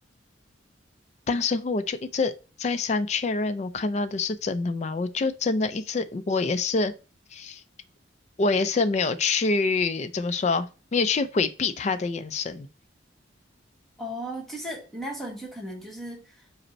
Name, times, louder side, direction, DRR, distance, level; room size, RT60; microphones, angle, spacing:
voice 1, 1.3-2.3 2.6-6.9 7.3-7.6 8.4-10.7 10.9-12.7, left 4 dB, 35° left, 0.3 m, -26 dB
voice 2, 14.0-16.4, equal, ahead, 0.9 m, -36 dB
5.1 x 2.1 x 4.2 m
head